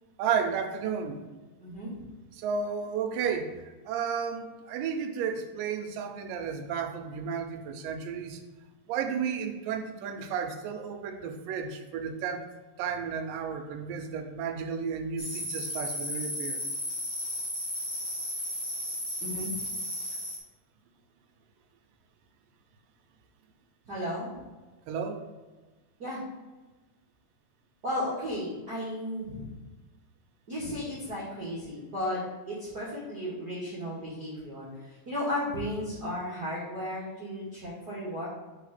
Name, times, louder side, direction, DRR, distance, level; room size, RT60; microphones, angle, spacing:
voice 1, 0.2-1.2 2.4-3.6 3.9-8.4 8.9-12.5 12.8-16.6 24.9-25.2, right 6 dB, 85° right, 6 dB, 2.3 m, -32 dB
voice 2, 1.6-1.9 19.2-19.6 23.9-24.4 26.0-26.2 27.8-29.5 30.5-32.2 32.5-38.3, left 1 dB, 50° right, -7 dB, 1.2 m, -34 dB
sound 1, 15.2-20.4, equal, 85° left, 0.6 m, -34 dB
4.4 x 4.1 x 5.6 m, 1.2 s
omnidirectional pair, 3.8 m